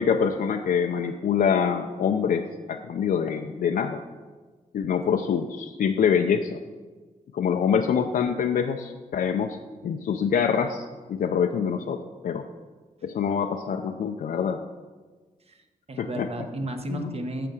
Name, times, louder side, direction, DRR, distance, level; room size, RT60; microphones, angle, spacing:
voice 1, 0.0-4.0 4.7-6.6 7.3-9.6 9.8-12.4 13.0-14.6 16.0-16.3 16.9-17.2, left 7 dB, 85° left, 4 dB, 0.5 m, -25 dB
voice 2, 15.5-17.5, right 1 dB, 45° right, 6 dB, 1.2 m, -33 dB
9.0 x 6.8 x 6.3 m, 1.3 s
wide cardioid pair, 100°, 14 cm